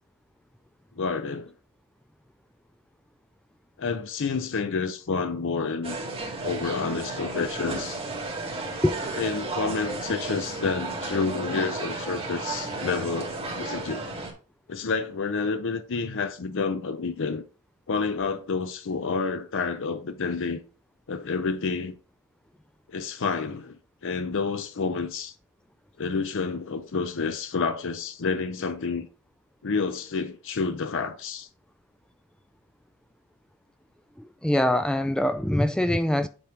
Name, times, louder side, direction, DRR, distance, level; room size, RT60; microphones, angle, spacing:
voice 1, 1.0-1.5 3.8-6.0 6.4-8.0 9.2-14.1 14.7-17.4 17.9-20.6 21.1-22.0 22.9-25.3 26.0-29.1 29.6-31.5, left 4 dB, 55° left, 0.6 m, -29 dB
sound 1, 5.8-14.3, right 3 dB, 25° right, 1.8 m, -33 dB
voice 2, 34.2-36.3, left 1 dB, 5° left, 0.3 m, -23 dB
8.8 x 3.0 x 5.0 m
head